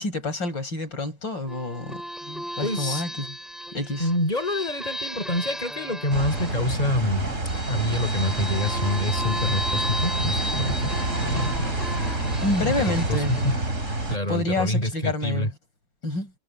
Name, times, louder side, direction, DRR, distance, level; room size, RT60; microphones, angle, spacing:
voice 1, 0.0-3.3 3.7-4.1 12.4-13.4 14.3-15.5 16.0-16.3, left 2 dB, 70° left, 6.4 m, -28 dB
sound 1, 1.5-14.7, equal, ahead, 6.9 m, -35 dB
voice 2, 2.6-3.0 4.0-11.7 12.6-13.6 14.1-15.5, left 1 dB, 20° left, 5.5 m, -27 dB
sound 2, 6.1-14.2, right 2 dB, 40° right, 5.0 m, -28 dB
omnidirectional pair, 2.1 m